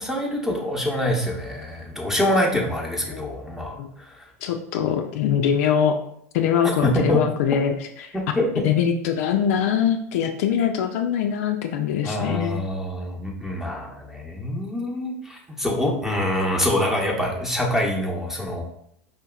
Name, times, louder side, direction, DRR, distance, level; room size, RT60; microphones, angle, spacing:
voice 1, 0.0-4.3 6.6-7.2 8.1-8.7 12.0-18.6, left 1 dB, 5° right, -1 dB, 0.9 m, -25 dB
voice 2, 4.4-6.0 6.3-7.7 8.0-8.1 8.6-12.6, left 8 dB, 65° left, 5 dB, 0.4 m, -22 dB
4.9 x 2.7 x 2.3 m, 0.70 s
hypercardioid pair, 90°, 9 cm